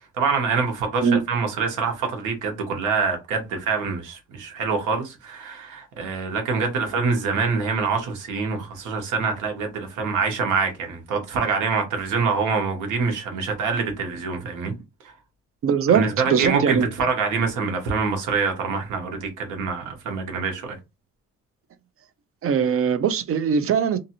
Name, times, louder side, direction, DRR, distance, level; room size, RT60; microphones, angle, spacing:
voice 1, 0.2-14.7 15.0-15.1 15.9-20.8, right 5 dB, 90° right, 1.1 m, -25 dB
voice 2, 15.6-16.9 22.4-24.0, right 7 dB, 50° right, 0.5 m, -21 dB
2.6 x 2.5 x 2.8 m
cardioid pair, 90°, 30 cm